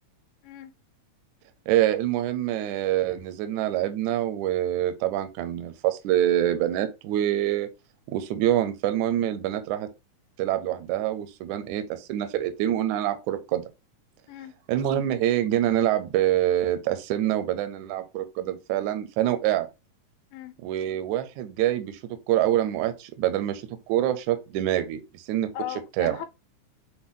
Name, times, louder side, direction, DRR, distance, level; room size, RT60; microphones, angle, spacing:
voice 1, 1.7-7.7 8.1-9.9 10.4-13.6 14.7-19.7 20.6-22.0 22.3-23.6 23.9-25.5 26.0-26.2, right 12 dB, 80° right, 1.8 m, -25 dB
voice 2, 25.5-26.2, left 12 dB, 85° left, 2.2 m, -37 dB
6.0 x 2.2 x 3.5 m
omnidirectional pair, 3.7 m